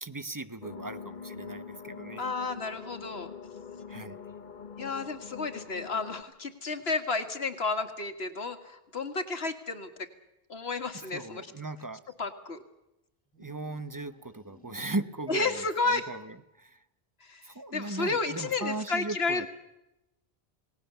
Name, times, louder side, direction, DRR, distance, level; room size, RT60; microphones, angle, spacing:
voice 1, 0.0-2.3 3.9-4.2 11.1-12.0 13.4-15.6 16.1-16.2 16.6-16.8 17.4-19.5, right 2 dB, 20° right, 13 dB, 0.9 m, -37 dB
sound 1, 0.6-6.2, left 6 dB, 50° left, 1.1 m, -44 dB
voice 2, 2.2-3.3 4.8-10.1 10.5-11.5 12.2-12.6 15.3-16.1 17.2-19.5, left 3 dB, 80° left, 8 dB, 2.0 m, -32 dB
sound 2, 13.3-15.3, left 2 dB, 10° left, 2.3 m, -58 dB
28.0 x 18.5 x 6.8 m, 0.90 s
omnidirectional pair, 1.0 m